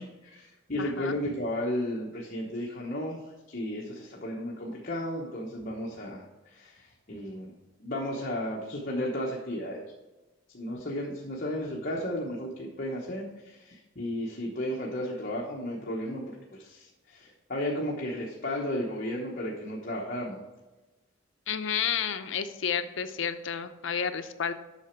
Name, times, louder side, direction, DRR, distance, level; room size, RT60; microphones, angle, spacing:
voice 1, 0.0-3.2 3.5-7.5 7.8-9.8 10.5-20.4, left 1 dB, 45° left, -2 dB, 1.0 m, -34 dB
voice 2, 0.8-1.2 21.5-24.5, left 7 dB, 70° left, 9 dB, 0.6 m, -31 dB
8.2 x 6.0 x 4.4 m, 1.1 s
head